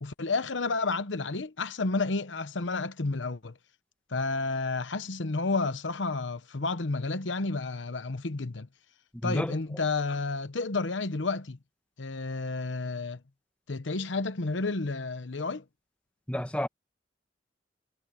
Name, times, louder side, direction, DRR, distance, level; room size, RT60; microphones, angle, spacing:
voice 1, 0.0-3.6 4.1-8.7 9.2-11.6 12.0-13.2 13.7-15.6, left 3 dB, 85° left, 1.0 m, -31 dB
voice 2, 9.1-9.6 16.3-16.7, left 1 dB, 5° left, 1.6 m, -30 dB
head